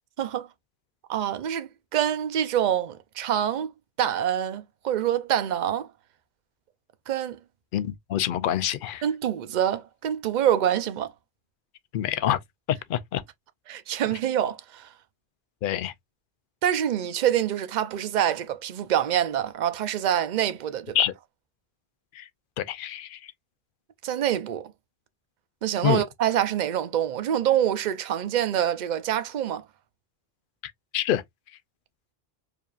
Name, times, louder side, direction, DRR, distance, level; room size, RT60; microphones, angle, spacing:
voice 1, 0.2-0.5 1.1-3.7 4.0-5.9 7.1-7.4 9.0-11.1 13.7-14.9 16.6-21.0 24.0-24.7 25.6-29.6, right 10 dB, 55° right, 0.6 m, -26 dB
voice 2, 7.7-9.0 11.9-12.4 12.7-13.2 15.6-15.9 20.9-21.1 22.1-22.3 22.6-23.3 25.8-26.0 30.9-31.2, left 11 dB, 60° left, 0.7 m, -26 dB
4.9 x 2.7 x 2.4 m
omnidirectional pair, 1.1 m